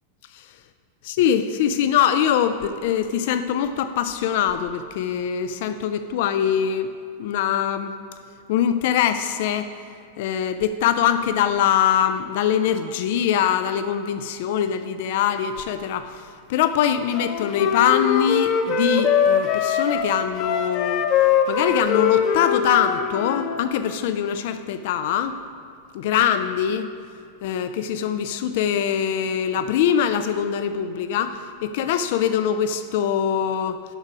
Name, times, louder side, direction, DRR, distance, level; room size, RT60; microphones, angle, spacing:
voice 1, 1.0-6.9 7.2-7.9 8.5-9.7 10.2-21.0 21.5-25.4 25.9-26.9 27.4-33.8, left 9 dB, 50° left, 10 dB, 0.3 m, -23 dB
Wind instrument woodwind instrument, 17.1-23.5, left 7 dB, 35° left, 0.8 m, -22 dB
9.0 x 6.4 x 4.9 m, 2.4 s
figure-of-eight pair, 90°, 0 cm